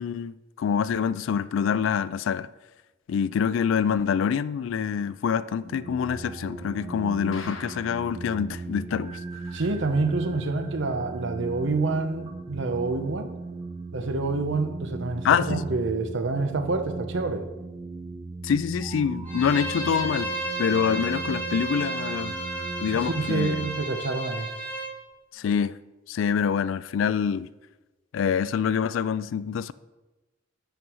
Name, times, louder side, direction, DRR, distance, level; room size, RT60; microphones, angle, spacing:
voice 1, 0.0-2.5 3.1-9.2 15.2-15.7 18.4-20.3 20.6-22.4 22.8-23.7 25.3-25.8 26.1-27.5 28.1-29.7, left 7 dB, 70° left, 0.3 m, -26 dB
Drone loop, 5.6-23.7, right 3 dB, 30° right, 0.5 m, -38 dB
sound 1, 7.3-8.2 8.5-8.6 8.9-9.0 9.5-9.6, left 3 dB, 85° left, 1.0 m, -42 dB
voice 2, 9.5-13.3 13.9-17.5 22.9-24.5, right 3 dB, 65° right, 0.8 m, -27 dB
Bowed string instrument, 19.3-24.9, right 2 dB, 10° left, 1.9 m, -33 dB
5.7 x 5.4 x 6.2 m
head